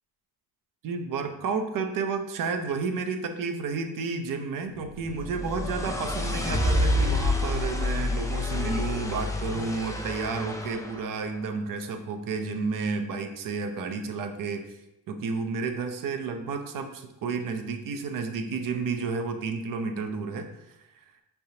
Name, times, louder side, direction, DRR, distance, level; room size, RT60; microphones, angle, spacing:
voice 1, 0.8-14.7 15.1-20.5, right 4 dB, 60° right, 6 dB, 0.6 m, -31 dB
sound 1, 4.9-11.0, left 1 dB, 10° left, 0.4 m, -28 dB
5.7 x 3.4 x 2.8 m, 0.91 s
cardioid pair, 115°, 37 cm